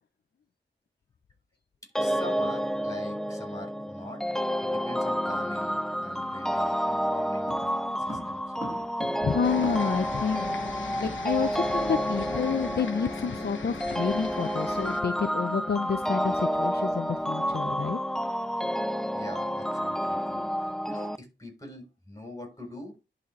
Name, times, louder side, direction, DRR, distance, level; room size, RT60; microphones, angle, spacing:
voice 1, 2.0-4.2 4.6-7.5 8.0-8.4 19.1-23.0, left 1 dB, 15° left, 3.7 m, -43 dB
sound 1, 2.0-21.2, equal, ahead, 0.3 m, -30 dB
sound 2, 7.5-10.1 10.4-10.5 10.7-11.8 12.0-12.2 12.6-12.8, right 1 dB, 15° right, 4.1 m, -42 dB
voice 2, 9.2-10.6 11.0-18.0, left 6 dB, 55° left, 0.5 m, -29 dB
sound 3, 9.4-15.0, left 5 dB, 80° left, 1.0 m, -40 dB
11.0 x 4.2 x 3.1 m
wide cardioid pair, 70°, 19 cm